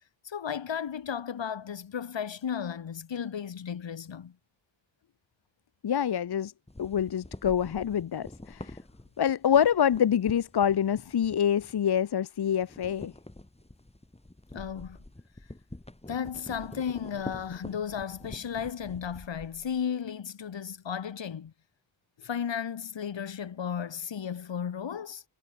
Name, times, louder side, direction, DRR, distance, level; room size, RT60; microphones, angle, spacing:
voice 1, 0.2-4.4 14.5-15.0 16.1-21.5 22.2-25.2, left 7 dB, 90° left, 2.4 m, -34 dB
voice 2, 5.8-6.5 6.8-8.8 9.2-13.1, left 9 dB, 60° left, 0.9 m, -26 dB
sound 1, 6.7-12.1 12.4-19.9, left 1 dB, 15° left, 5.8 m, -46 dB
wide cardioid pair, 100°, 43 cm